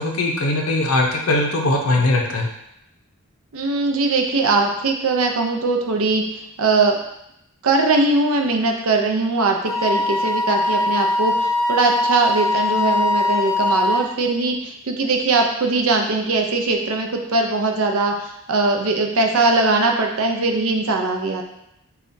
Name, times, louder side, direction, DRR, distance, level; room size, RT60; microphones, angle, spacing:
voice 1, 0.0-2.5, left 2 dB, 75° left, 1 dB, 0.6 m, -20 dB
voice 2, 3.5-7.0 7.6-21.4, right 3 dB, 70° right, 3 dB, 0.5 m, -20 dB
Wind instrument woodwind instrument, 9.7-14.1, left 2 dB, 15° left, 0.5 m, -21 dB
5.5 x 2.3 x 2.6 m, 0.80 s
head